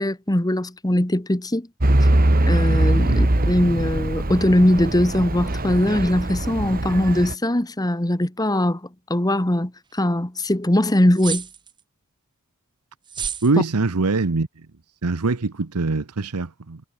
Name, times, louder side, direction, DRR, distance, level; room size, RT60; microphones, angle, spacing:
voice 1, 0.0-1.7 2.5-8.8 9.1-11.5, left 1 dB, 15° left, 1.5 m, -21 dB
Truck / Idling, 1.8-7.3, right 1 dB, 40° right, 1.7 m, -21 dB
sound 1, 11.2-11.8 13.1-13.5, right 7 dB, 20° right, 1.1 m, -30 dB
voice 2, 13.4-14.5 15.0-16.8, right 3 dB, 85° right, 1.0 m, -23 dB
head